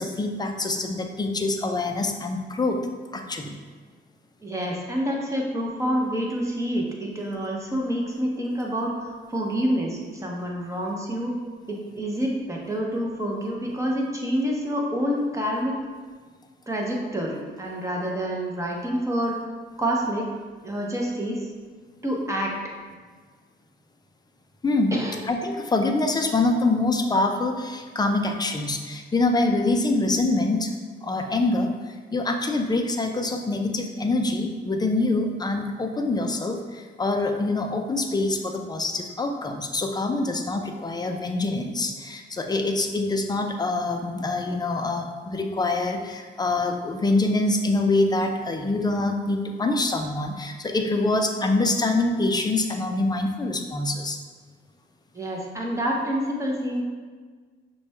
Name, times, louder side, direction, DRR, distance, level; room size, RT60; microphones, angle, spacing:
voice 1, 0.0-2.8 3.1-3.6 24.6-24.9 25.3-30.7 31.0-54.2, left 2 dB, 20° left, 4 dB, 0.5 m, -25 dB
voice 2, 4.4-11.3 11.7-15.7 16.7-19.4 19.8-20.3 20.6-21.5 22.0-22.5 24.9-25.2 55.1-56.8, equal, 15° right, -2 dB, 0.8 m, -27 dB
5.7 x 2.3 x 3.4 m, 1.5 s
cardioid pair, 90°, 20 cm